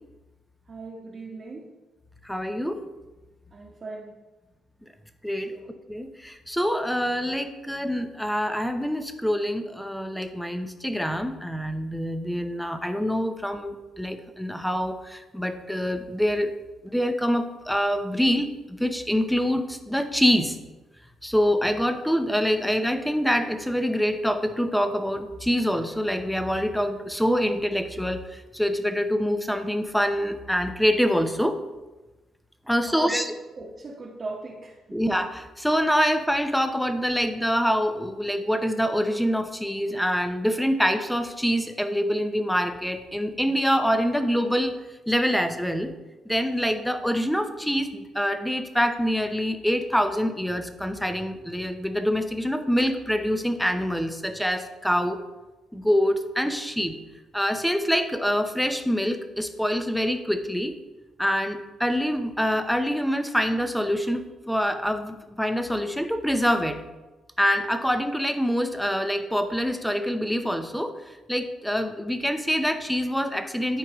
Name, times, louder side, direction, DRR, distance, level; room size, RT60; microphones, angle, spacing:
voice 1, 0.7-1.7 3.5-4.2 5.5-5.7 32.9-33.3 33.6-34.8, right 3 dB, 40° right, -5 dB, 1.3 m, -37 dB
voice 2, 2.2-2.8 5.2-5.5 5.9-16.5 16.8-20.6 21.2-31.6 32.7-33.3 34.9-44.8 45.1-45.9 46.3-55.2 55.7-57.0 57.3-60.7 61.2-66.8 67.4-70.9 71.3-73.8, equal, ahead, 7 dB, 0.8 m, -25 dB
13.0 x 4.5 x 3.1 m, 1.1 s
cardioid pair, 90°, 0 cm